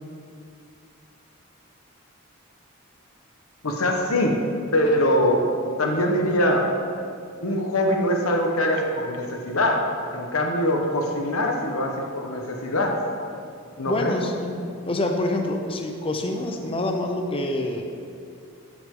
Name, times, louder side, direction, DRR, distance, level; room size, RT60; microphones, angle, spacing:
voice 1, 3.6-4.4 4.7-5.4 5.8-6.7 7.4-9.8 10.1-13.0 13.8-14.1, left 1 dB, 85° left, 2 dB, 1.1 m, -23 dB
voice 2, 13.9-14.5 14.9-18.0, left 1 dB, 25° left, 3 dB, 0.7 m, -26 dB
13.0 x 6.3 x 3.8 m, 2.4 s
head